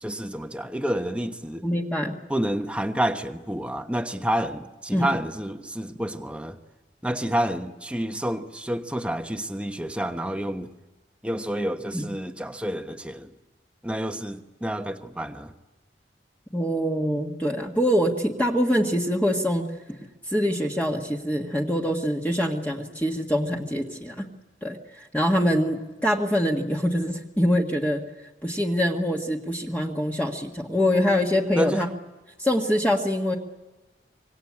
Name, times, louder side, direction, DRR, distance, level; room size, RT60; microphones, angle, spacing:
voice 1, 0.0-1.7 2.3-6.6 7.0-10.7 11.2-13.3 13.8-15.5 31.5-31.8, equal, 5° right, 1.2 m, -29 dB
voice 2, 1.6-2.2 4.9-5.1 11.9-12.1 16.5-19.7 20.3-24.3 24.6-28.0 28.4-31.9 32.4-33.4, equal, 10° left, 1.7 m, -24 dB
26.0 x 24.5 x 8.7 m
head